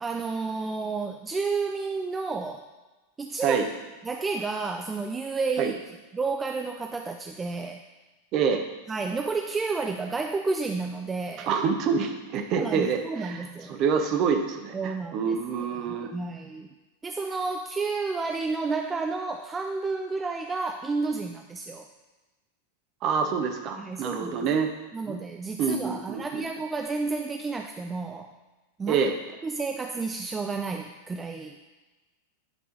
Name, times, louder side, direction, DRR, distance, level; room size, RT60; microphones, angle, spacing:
voice 1, 0.0-2.6 3.2-3.6 4.0-5.7 6.1-7.8 8.9-11.5 12.5-13.8 14.7-15.4 15.9-16.7 17.0-21.9 23.8-24.5 24.9-28.3 28.8-29.0 29.4-31.6, right 4 dB, 15° right, 4 dB, 0.4 m, -31 dB
voice 2, 8.3-8.6 11.5-16.1 23.0-24.7 25.1-25.2 25.6-26.4 28.9-29.2, right 6 dB, 40° right, 5 dB, 0.8 m, -27 dB
9.7 x 3.6 x 4.1 m, 1.2 s
figure-of-eight pair, 90°, 0 cm